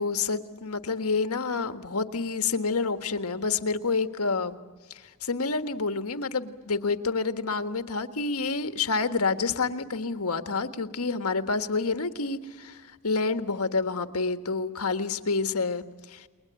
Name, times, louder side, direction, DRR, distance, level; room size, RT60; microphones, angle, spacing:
voice 1, 0.0-4.6 5.2-15.8 16.1-16.3, left 4 dB, 85° left, 9 dB, 1.6 m, -28 dB
30.0 x 21.5 x 9.1 m, 1.4 s
head